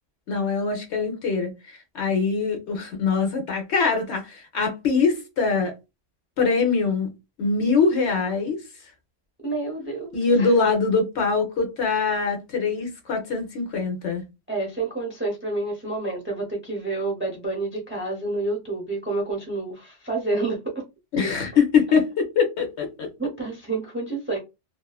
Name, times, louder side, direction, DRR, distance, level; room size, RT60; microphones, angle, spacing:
voice 1, 0.3-5.7 6.4-7.1 7.4-8.6 10.1-14.2 21.1-23.1, left 5 dB, 65° left, 1.0 m, -23 dB
voice 2, 9.4-10.5 14.5-20.8 23.2-24.4, right 2 dB, 15° right, 0.4 m, -29 dB
2.6 x 2.4 x 2.3 m
omnidirectional pair, 1.3 m